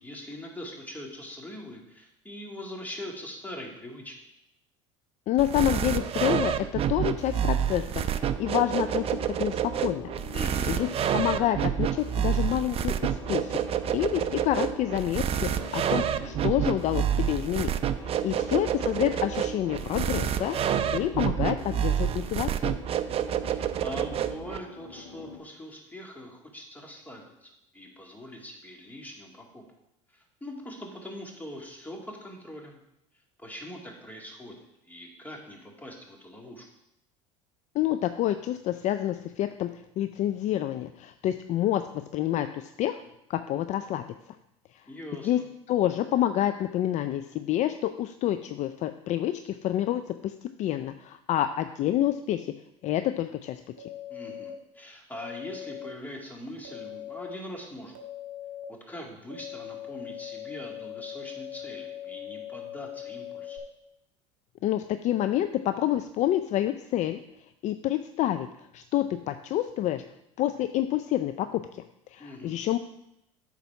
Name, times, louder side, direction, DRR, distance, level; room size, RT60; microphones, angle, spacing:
voice 1, 0.0-4.3 10.3-10.9 18.1-18.5 23.4-29.6 30.1-32.8 33.4-36.7 44.9-45.5 54.1-57.9 58.7-63.6 72.2-72.6, left 1 dB, 10° left, 0 dB, 2.1 m, -42 dB
voice 2, 5.3-10.1 10.7-10.9 11.1-17.7 18.0-20.6 20.9-22.8 37.7-39.7 40.0-41.8 42.1-43.0 43.3-44.0 45.2-45.4 45.7-52.5 52.8-53.6 64.6-67.2 67.6-68.5 68.7-70.0 70.4-71.8 72.1-72.8, left 12 dB, 45° left, 9 dB, 0.4 m, -28 dB
sound 1, 5.4-24.6, right 9 dB, 35° right, 0.5 m, -28 dB
sound 2, 7.9-25.4, left 4 dB, 90° left, 2.0 m, -45 dB
sound 3, 53.8-54.5 55.1-55.9 56.6-57.3 57.9-58.6 59.3-63.6, left 11 dB, 55° right, 1.6 m, -40 dB
8.4 x 4.1 x 5.7 m, 0.82 s
hypercardioid pair, 85°, 16 cm